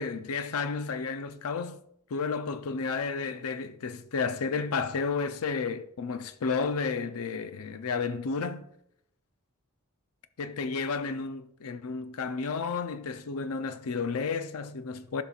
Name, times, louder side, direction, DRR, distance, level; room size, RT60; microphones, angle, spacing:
voice 1, 0.0-1.8 2.1-8.6 10.4-15.2, left 5 dB, 75° left, 0.5 m, -32 dB
13.0 x 5.4 x 2.4 m
head